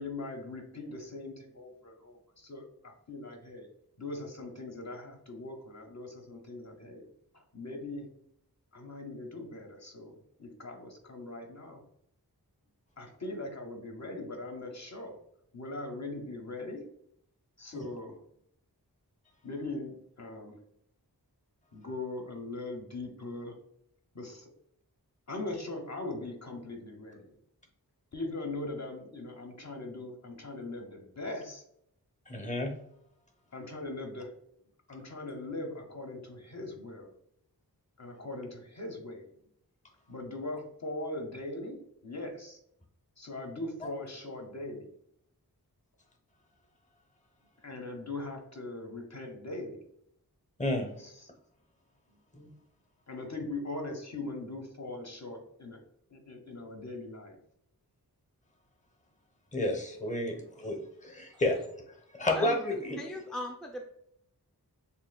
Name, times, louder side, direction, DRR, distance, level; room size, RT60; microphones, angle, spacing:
voice 1, 0.0-3.7 4.0-7.0 7.3-8.1 8.7-11.8 13.0-15.2 15.5-16.8 17.6-18.2 19.4-20.6 21.7-23.6 24.1-24.5 25.3-27.3 28.1-31.6 33.5-34.3 34.9-37.1 38.0-39.3 40.1-42.6 43.2-44.9 47.6-49.8 51.0-51.3 53.1-55.8 56.1-57.4 59.7-59.8 60.2-60.4, left 2 dB, 45° left, 2 dB, 0.9 m, -40 dB
voice 2, 32.3-32.7 50.6-50.9 52.3-52.5 59.5-61.6 62.2-63.0, left 1 dB, 20° left, 3 dB, 0.8 m, -31 dB
voice 3, 62.3-63.8, left 1 dB, ahead, 1 dB, 0.4 m, -39 dB
6.6 x 2.6 x 2.2 m, 0.72 s
wide cardioid pair, 70°, 38 cm